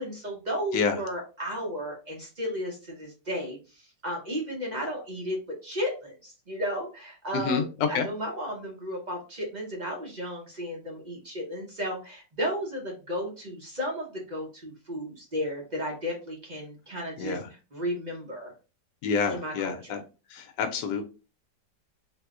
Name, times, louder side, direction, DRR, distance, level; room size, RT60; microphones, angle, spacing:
voice 1, 0.0-17.4 17.7-18.5 19.3-20.0, equal, 45° right, -1 dB, 0.6 m, -34 dB
voice 2, 7.3-7.6 7.9-8.1 17.2-17.5 19.0-20.0 20.3-21.0, left 5 dB, 85° left, 6 dB, 1.2 m, -28 dB
3.5 x 2.8 x 2.3 m, 0.32 s
omnidirectional pair, 1.8 m